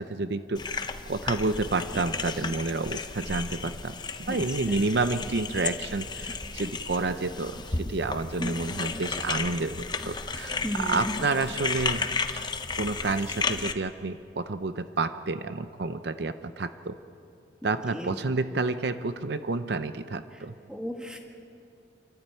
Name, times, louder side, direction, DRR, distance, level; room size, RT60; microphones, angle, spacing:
voice 1, 0.0-4.0 4.3-12.0 12.8-17.0 17.6-20.5, right 3 dB, 65° right, 11 dB, 0.6 m, -30 dB
sound 1, 0.6-13.7, left 4 dB, 25° left, 0.7 m, -33 dB
voice 2, 10.6-11.1 17.9-18.2 20.7-21.2, equal, 5° right, 1 dB, 1.9 m, -34 dB
28.5 x 12.5 x 9.1 m, 2.6 s
head